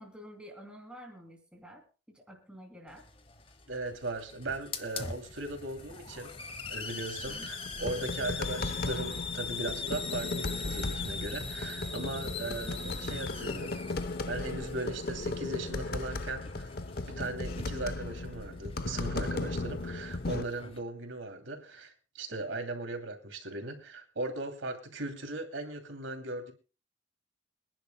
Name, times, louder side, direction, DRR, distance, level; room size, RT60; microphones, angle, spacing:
voice 1, 0.0-3.1 7.3-7.7 12.4-13.0, equal, 5° right, 2 dB, 2.9 m, -50 dB
Hiss, 2.9-20.8, left 5 dB, 30° left, 1.0 m, -42 dB
voice 2, 3.7-6.4 6.7-13.8 14.3-16.7 17.0-26.5, right 2 dB, 80° right, 5 dB, 2.7 m, -38 dB
sound 1, 7.4-20.4, left 2 dB, 50° left, 0.7 m, -36 dB
26.5 x 10.5 x 2.2 m, 0.34 s
head